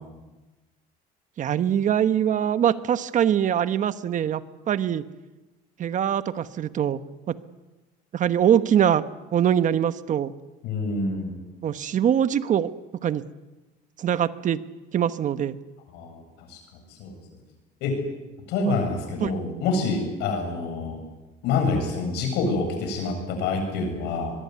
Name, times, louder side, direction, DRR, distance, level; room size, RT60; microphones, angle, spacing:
voice 1, 1.4-5.0 5.8-7.0 7.3-7.4 8.1-9.0 9.3-10.3 11.6-12.7 13.0-13.2 14.0-14.6 14.9-15.6 18.7-18.8 19.2-19.3, right 9 dB, 50° right, 12 dB, 1.2 m, -23 dB
voice 2, 10.6-11.4 15.9-16.6 17.0-17.2 17.8-18.0 18.5-21.0 21.4-24.3, left 3 dB, 85° left, 5 dB, 7.8 m, -27 dB
23.0 x 22.5 x 9.6 m, 1.1 s
cardioid pair, 120°, 17 cm